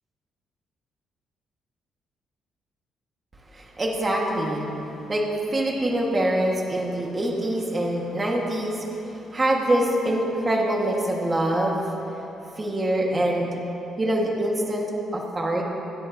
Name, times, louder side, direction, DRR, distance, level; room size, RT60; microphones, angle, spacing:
voice 1, 3.5-4.7 5.1-11.9 12.6-13.5 14.0-15.6, right 1 dB, 30° right, -2 dB, 2.2 m, -25 dB
26.0 x 10.0 x 3.1 m, 2.9 s
cardioid pair, 90°, 0 cm